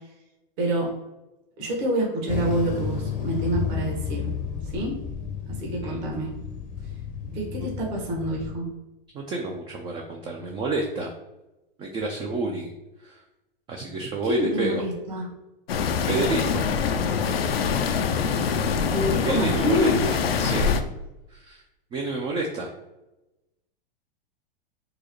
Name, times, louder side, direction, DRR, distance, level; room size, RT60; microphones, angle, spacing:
voice 1, 0.6-1.0 1.6-4.3 4.7-5.0 5.5-6.3 7.3-8.7 14.2-15.3 18.9-19.9, equal, 50° right, -2 dB, 1.5 m, -27 dB
sound 1, 2.3-8.5, left 7 dB, 25° left, 0.6 m, -32 dB
voice 2, 7.2-7.7 9.1-11.1 11.8-12.7 13.0-13.2 13.7-14.8 16.0-16.6 19.2-20.7 21.3-21.6 21.9-22.7, right 2 dB, 20° right, 1 dB, 0.3 m, -29 dB
sound 2, 15.7-20.8, left 6 dB, 90° left, 0.5 m, -24 dB
4.7 x 2.0 x 3.0 m, 0.98 s
hypercardioid pair, 110°, 29 cm